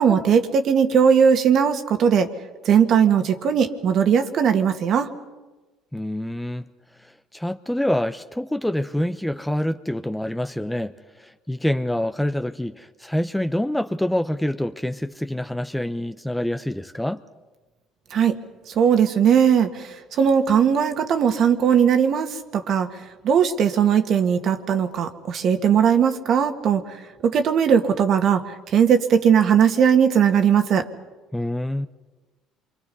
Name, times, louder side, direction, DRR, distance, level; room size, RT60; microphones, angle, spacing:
voice 1, 0.0-2.3 2.6-5.1 18.1-18.4 18.7-22.9 23.2-26.8 27.2-30.9, right 7 dB, 55° right, 6 dB, 2.0 m, -19 dB
voice 2, 5.9-6.6 7.0-17.2 31.3-31.9, left 1 dB, 5° left, 9 dB, 0.8 m, -26 dB
28.0 x 24.0 x 5.5 m, 1.2 s
supercardioid pair, 85°, 0 cm